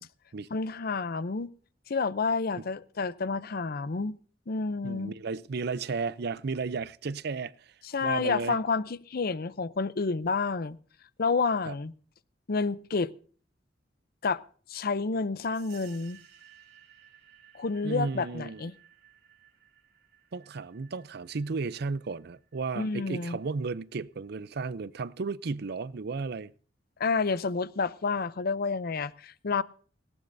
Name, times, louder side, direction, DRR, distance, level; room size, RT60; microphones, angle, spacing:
voice 1, 0.5-1.5 1.9-4.1 4.5-5.1 7.8-10.8 11.2-11.9 12.5-13.1 14.2-14.4 14.7-16.2 17.5-18.7 22.8-23.4 27.0-29.6, left 4 dB, 55° left, 0.6 m, -29 dB
voice 2, 4.8-7.7 8.0-8.6 11.7-11.8 17.8-18.6 20.3-26.5, right 4 dB, 60° right, 0.5 m, -34 dB
sound 1, 15.5-23.8, right 10 dB, 75° right, 3.5 m, -58 dB
18.5 x 17.5 x 2.6 m
head